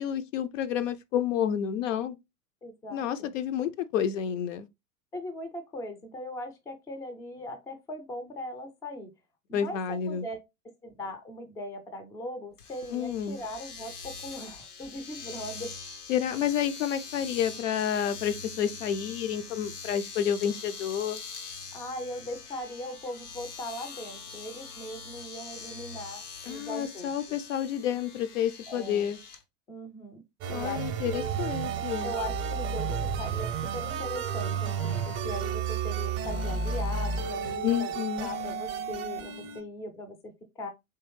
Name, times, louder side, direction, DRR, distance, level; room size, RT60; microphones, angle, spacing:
voice 1, 0.0-2.1 2.9-4.7 9.5-10.2 12.9-13.4 16.1-21.2 26.5-29.2 30.5-32.1 37.6-38.3, left 9 dB, 60° left, 0.5 m, -30 dB
voice 2, 2.6-3.3 5.1-9.1 9.5-10.4 10.6-15.7 21.7-27.1 28.7-29.1 29.7-31.3 32.0-40.7, left 1 dB, 5° left, 0.4 m, -39 dB
Domestic sounds home sounds, 12.6-29.4, left 5 dB, 85° left, 0.8 m, -43 dB
sound 1, 30.4-39.6, right 6 dB, 30° right, 0.6 m, -32 dB
3.5 x 3.0 x 3.1 m
figure-of-eight pair, 90°, 44 cm